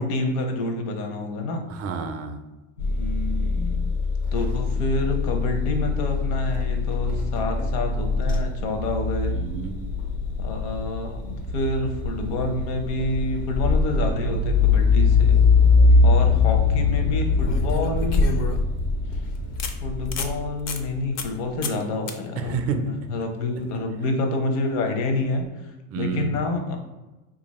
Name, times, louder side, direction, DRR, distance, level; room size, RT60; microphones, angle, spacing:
voice 1, 0.0-1.6 2.8-3.8 4.3-9.4 10.4-15.5 16.0-18.2 19.1-19.2 19.8-25.4 26.0-26.8, left 2 dB, 65° left, 4 dB, 0.9 m, -28 dB
voice 2, 1.7-2.4 9.3-9.7 22.4-22.8 25.9-26.3, right 6 dB, 35° right, 7 dB, 0.5 m, -29 dB
sound 1, 2.8-21.3, left 4 dB, 90° left, 1.1 m, -22 dB
sound 2, 15.7-16.1 17.5-18.8 19.2-19.3 19.6-19.7 20.1-20.3 20.7-20.8 21.2-21.4 21.6-21.8 22.1-22.2 25.3-25.4, left 3 dB, 40° left, 0.5 m, -28 dB
2.8 x 2.6 x 4.1 m, 1.1 s
supercardioid pair, 110°, 44 cm